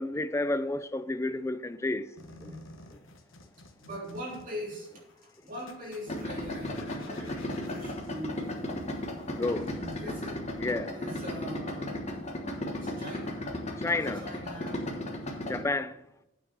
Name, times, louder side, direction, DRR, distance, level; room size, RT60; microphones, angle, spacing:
voice 1, 0.0-2.1 2.4-2.6 2.9-3.0 9.3-9.7 10.6-11.0 13.8-14.3 15.5-16.0, left 2 dB, 15° left, 0.3 m, -31 dB
sound 1, 2.2-10.2, left 2 dB, 65° left, 1.1 m, -53 dB
voice 2, 2.3-2.6 3.8-8.6 9.6-10.4 10.9-12.0 12.8-13.4 14.1-14.8, equal, 40° right, 3.3 m, -42 dB
Idling, 6.1-15.6, left 1 dB, 30° left, 1.2 m, -35 dB
8.9 x 4.7 x 7.0 m
head